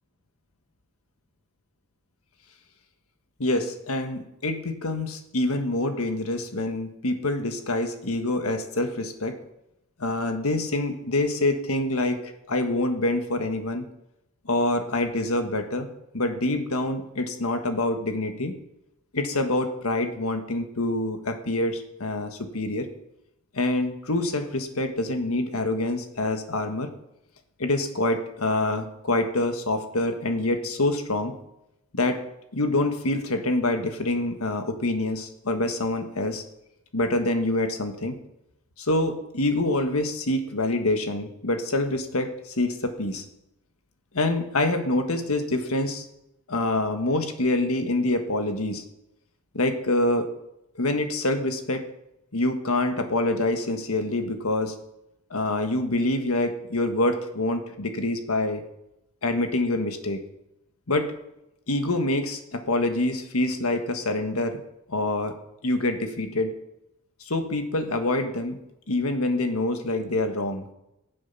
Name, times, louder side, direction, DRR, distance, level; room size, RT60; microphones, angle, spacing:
voice 1, 3.4-9.4 10.0-13.9 14.4-15.9 16.1-18.5 19.1-22.9 23.5-26.9 27.6-31.3 31.9-32.2 32.5-36.4 36.9-38.2 38.8-43.2 44.1-46.0 46.5-48.8 49.5-50.3 50.7-51.8 52.3-54.7 55.3-58.6 59.2-60.2 60.9-61.1 61.7-64.6 64.9-65.4 65.6-66.5 67.2-68.6 68.9-70.6, left 2 dB, 80° left, 6 dB, 1.5 m, -26 dB
19.0 x 7.7 x 5.5 m, 0.85 s
head